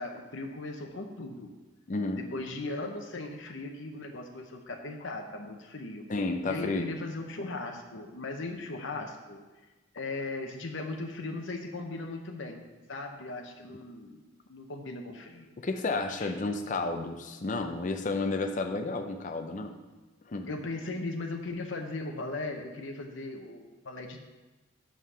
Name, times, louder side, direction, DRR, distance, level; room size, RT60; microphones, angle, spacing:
voice 1, 0.0-1.5 2.1-6.1 6.4-9.4 9.9-12.6 12.9-14.2 14.5-15.5 16.2-16.3 20.5-24.2, left 2 dB, 60° left, 3 dB, 0.8 m, -38 dB
voice 2, 1.9-2.2 6.1-6.9 15.6-19.8 20.3-20.5, left 3 dB, 35° left, 5 dB, 0.5 m, -31 dB
6.4 x 5.7 x 5.6 m, 1.2 s
head